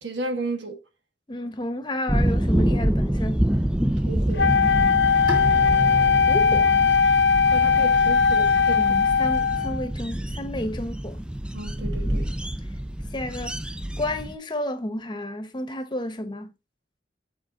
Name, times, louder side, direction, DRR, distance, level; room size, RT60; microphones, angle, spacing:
voice 1, 0.0-0.8 4.0-4.5 7.5-8.9 11.5-12.3, right 2 dB, 85° right, 1.5 m, -33 dB
voice 2, 1.3-3.4 6.3-6.8 8.8-11.3 13.1-13.6 14.0-16.5, left 1 dB, 25° left, 1.0 m, -31 dB
sound 1, 2.1-14.3, equal, 5° right, 0.4 m, -27 dB
Wind instrument woodwind instrument, 4.4-9.9, left 6 dB, 75° left, 0.7 m, -19 dB
Bowed string instrument, 5.3-8.5, right 2 dB, 25° right, 2.5 m, -36 dB
7.6 x 4.6 x 3.9 m
head